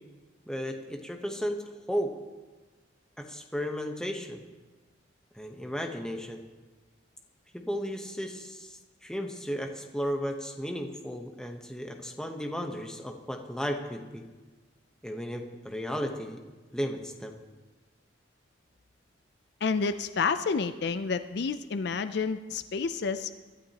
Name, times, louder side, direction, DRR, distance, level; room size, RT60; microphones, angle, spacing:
voice 1, 0.5-1.6 1.9-2.1 3.2-4.4 5.3-6.4 7.5-14.2 15.0-16.4 16.7-17.4, equal, 5° left, 3 dB, 0.9 m, -34 dB
voice 2, 19.6-23.3, left 5 dB, 55° left, 11 dB, 0.4 m, -29 dB
23.0 x 12.0 x 2.9 m, 1.3 s
head